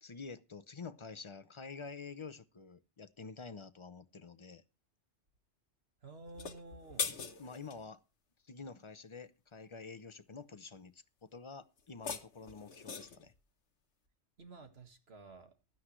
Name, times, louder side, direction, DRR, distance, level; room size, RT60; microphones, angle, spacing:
voice 1, 0.0-4.6 7.1-8.0 8.4-13.3, left 4 dB, 30° left, 0.7 m, -48 dB
voice 2, 6.0-7.1 14.4-15.5, right 3 dB, 60° right, 2.0 m, -52 dB
sound 1, 6.3-7.8 11.8-13.3, left 6 dB, 75° left, 1.3 m, -41 dB
16.0 x 12.0 x 3.1 m
omnidirectional pair, 1.2 m